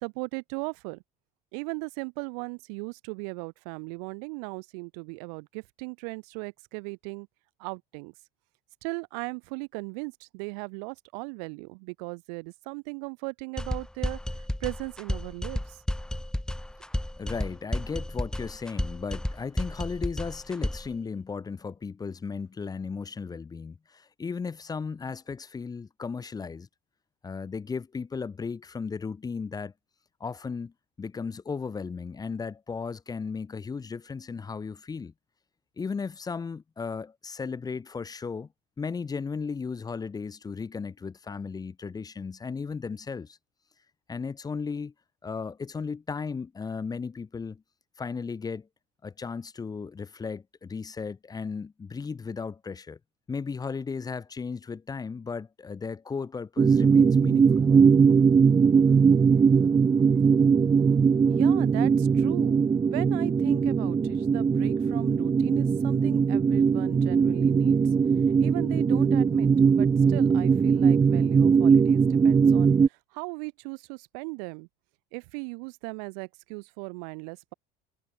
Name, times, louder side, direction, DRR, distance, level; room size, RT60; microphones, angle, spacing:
voice 1, 0.0-1.0 1.5-7.3 7.6-8.1 8.8-15.8 60.3-60.8 61.3-67.8 68.4-74.7 75.1-77.5, right 37 dB, 85° right, 2.1 m, -37 dB
sound 1, 13.6-20.9, left 1 dB, 5° left, 2.0 m, -32 dB
voice 2, 17.2-26.7 27.2-29.7 30.2-30.7 31.0-35.1 35.8-38.5 38.8-43.4 44.1-44.9 45.2-47.6 48.0-48.7 49.0-53.0 53.3-57.7, left 5 dB, 20° left, 1.2 m, -35 dB
sound 2, 56.6-72.9, right 6 dB, 20° right, 0.7 m, -20 dB
cardioid pair, 125°, 19 cm